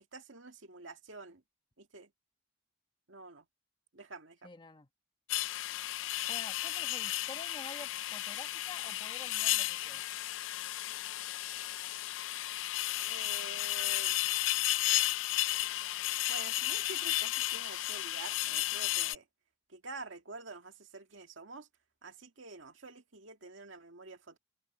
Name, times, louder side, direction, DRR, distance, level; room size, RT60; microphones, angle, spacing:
voice 1, 0.1-1.4 1.8-2.1 3.1-3.5 3.9-4.5 13.0-14.3 16.3-19.3 19.7-21.7 22.0-24.4, right 3 dB, 85° right, 2.0 m, -48 dB
voice 2, 4.4-4.9 6.3-10.3, left 2 dB, 25° left, 1.3 m, -49 dB
sound 1, 5.3-19.2, left 15 dB, 85° left, 0.4 m, -33 dB
head